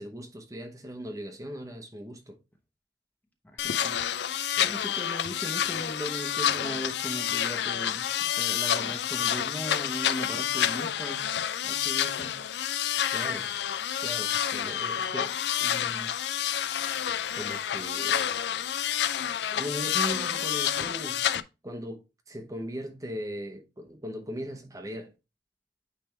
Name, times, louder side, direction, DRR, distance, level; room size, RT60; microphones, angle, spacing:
voice 1, 0.0-2.4 4.6-4.8 13.1-13.5 14.0-16.1 17.3-18.3 19.5-21.2 21.6-22.0 22.3-25.1, equal, 20° right, 0.9 m, -38 dB
voice 2, 3.5-4.0 4.6-8.1 8.4-11.3 11.6-12.4, equal, 10° left, 0.9 m, -38 dB
sound 1, 3.6-21.4, left 10 dB, 65° left, 0.4 m, -29 dB
9.0 x 3.4 x 3.3 m
head